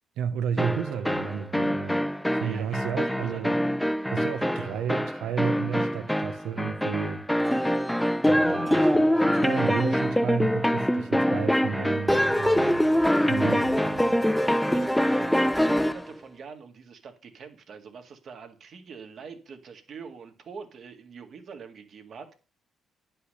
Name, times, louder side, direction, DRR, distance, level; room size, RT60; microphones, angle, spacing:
voice 1, 0.2-2.0 2.3-3.6 4.1-7.3 8.2-12.9 13.3-14.3, right 7 dB, 90° right, 0.8 m, -32 dB
sound 1, 0.6-16.0, equal, 5° left, 0.5 m, -24 dB
voice 2, 2.4-3.6 4.6-4.8 8.4-9.1 14.4-22.3, right 5 dB, 60° right, 1.8 m, -44 dB
10.0 x 5.5 x 6.6 m
cardioid pair, 90°, 0 cm